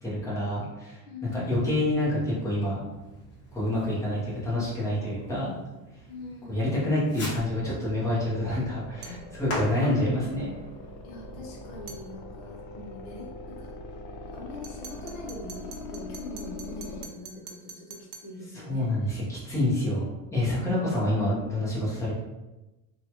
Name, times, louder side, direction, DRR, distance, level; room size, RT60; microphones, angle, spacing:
voice 1, 0.0-2.8 3.5-5.5 6.5-10.5 18.7-22.1, left 1 dB, 5° left, -8 dB, 0.7 m, -27 dB
voice 2, 1.1-1.8 6.1-6.9 11.0-13.7 14.3-19.2 20.6-21.0, left 1 dB, 55° left, -2 dB, 0.8 m, -43 dB
Fireworks, 1.3-12.0, equal, 30° left, 1.1 m, -44 dB
sound 1, 8.4-17.0, left 2 dB, 85° left, 0.6 m, -42 dB
sound 2, 9.0-9.3 11.9-12.1 14.6-18.4, right 5 dB, 65° right, 0.6 m, -46 dB
2.7 x 2.3 x 2.8 m, 1.1 s
cardioid pair, 160°, 44 cm